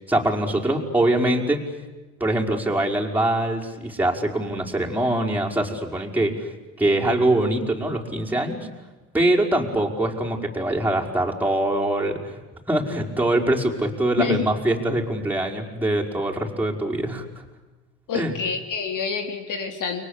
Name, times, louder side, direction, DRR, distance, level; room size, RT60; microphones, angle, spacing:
voice 1, 0.1-1.7 2.2-6.5 6.8-8.6 9.1-12.4 12.7-17.2 18.1-18.3, right 1 dB, 5° right, -1 dB, 5.4 m, -23 dB
voice 2, 18.1-20.0, left 6 dB, 50° left, 5 dB, 3.6 m, -27 dB
30.0 x 23.5 x 8.4 m, 1.2 s
hypercardioid pair, 85°, 41 cm